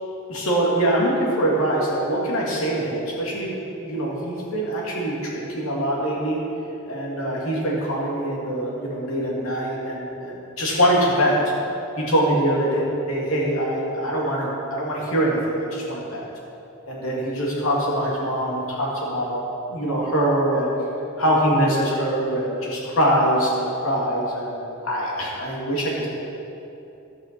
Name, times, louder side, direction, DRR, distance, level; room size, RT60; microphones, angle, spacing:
voice 1, 0.3-6.4 6.8-11.4 12.0-16.2 16.9-19.4 19.7-20.7 21.2-24.6 24.8-26.1, right 1 dB, 85° left, -4 dB, 2.7 m, -23 dB
12.5 x 6.2 x 6.2 m, 2.9 s
head